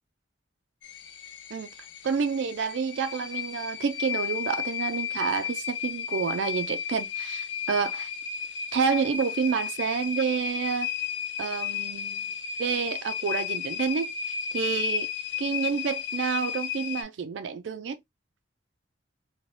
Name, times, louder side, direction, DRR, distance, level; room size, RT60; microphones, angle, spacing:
sound 1, 0.8-17.0, left 8 dB, 80° left, 0.6 m, -33 dB
voice 1, 2.0-8.1 8.7-10.9 11.4-12.3 12.6-15.1 15.4-18.0, right 6 dB, 80° right, 0.4 m, -29 dB
3.1 x 2.2 x 2.5 m
head